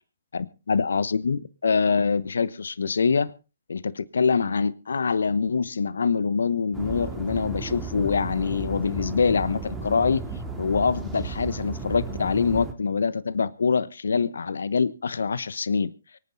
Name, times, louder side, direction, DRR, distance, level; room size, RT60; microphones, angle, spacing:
voice 1, 0.3-3.3 3.7-10.2 10.6-15.9, left 5 dB, 80° left, 16 dB, 1.1 m, -24 dB
sound 1, 6.7-12.7, right 4 dB, 10° right, 3.2 m, -34 dB
24.5 x 9.4 x 4.0 m, 0.33 s
hypercardioid pair, 140°, 0 cm